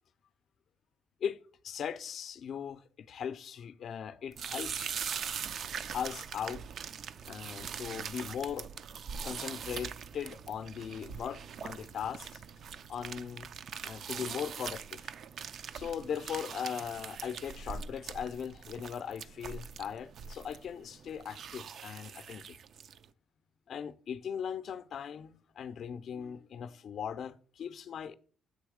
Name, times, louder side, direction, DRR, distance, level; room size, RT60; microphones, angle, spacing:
voice 1, 1.6-5.1 5.9-6.6 7.3-8.7 9.2-12.4 12.9-13.5 13.8-15.1 15.7-22.6 23.7-28.1, left 8 dB, 65° left, 0.4 m, -39 dB
sound 1, 4.3-23.0, right 7 dB, 65° right, 0.3 m, -42 dB
7.8 x 3.1 x 4.9 m
cardioid pair, 90°, 0 cm